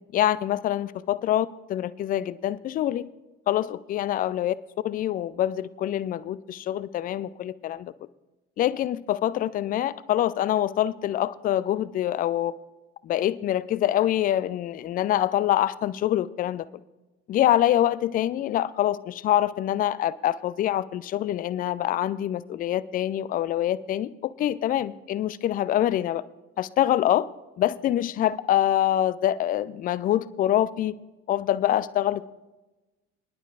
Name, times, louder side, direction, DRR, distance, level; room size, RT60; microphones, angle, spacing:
voice 1, 0.1-3.0 3.5-4.6 4.8-7.9 8.6-12.5 13.0-16.6 17.3-26.2 26.6-27.3 27.6-30.9 31.3-32.3, left 12 dB, 25° left, 0.3 m, -25 dB
23.0 x 11.0 x 2.5 m
figure-of-eight pair, 55°, 35 cm